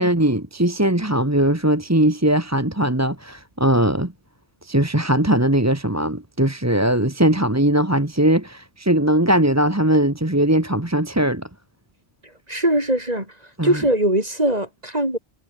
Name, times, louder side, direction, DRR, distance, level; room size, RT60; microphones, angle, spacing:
voice 1, 0.0-4.1 4.6-11.5 13.6-13.8, right 1 dB, 15° right, 1.8 m, -19 dB
voice 2, 12.5-13.3 13.6-15.2, right 1 dB, 35° right, 6.9 m, -21 dB
omnidirectional pair, 1.2 m